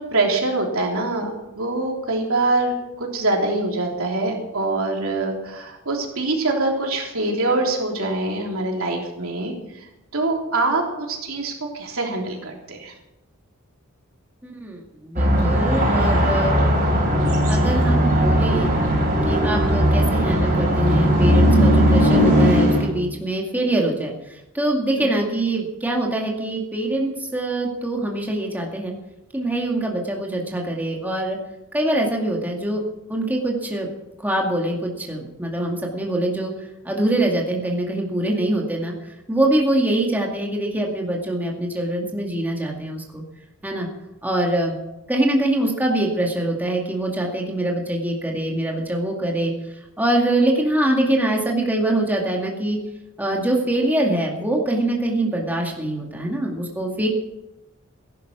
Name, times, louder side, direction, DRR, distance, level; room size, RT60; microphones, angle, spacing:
voice 1, 0.0-9.5 10.1-12.9 25.0-25.1, right 2 dB, 75° right, 0 dB, 3.4 m, -24 dB
voice 2, 14.4-16.6 17.5-18.7 19.3-28.9 29.3-31.4 31.7-32.8 33.1-33.9 34.2-36.5 36.8-38.9 39.3-43.2 43.6-43.9 44.2-44.8 45.1-49.5 50.0-52.8 53.2-57.1, right 1 dB, 10° right, -1 dB, 2.2 m, -24 dB
sound 1, 15.2-22.9, equal, 40° right, 5.6 m, -18 dB
16.5 x 11.5 x 6.1 m, 0.94 s
head